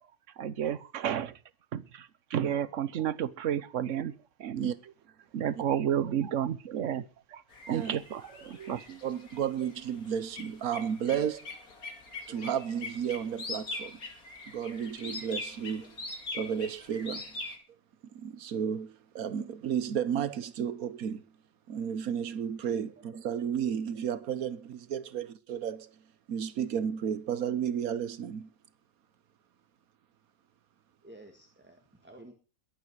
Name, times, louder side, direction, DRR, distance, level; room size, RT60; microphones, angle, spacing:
voice 1, 0.4-1.4 1.7-4.7 5.3-9.0, right 9 dB, 65° right, 1.2 m, -32 dB
sound 1, 7.5-17.6, left 3 dB, 80° left, 3.1 m, -42 dB
voice 2, 9.0-11.5 12.3-14.0 14.5-15.8 16.3-17.4 18.1-21.2 21.7-25.9 26.3-28.5, right 8 dB, 80° right, 1.4 m, -33 dB
voice 3, 31.0-32.3, right 1 dB, 5° right, 1.7 m, -52 dB
21.5 x 8.6 x 4.8 m
omnidirectional pair, 1.5 m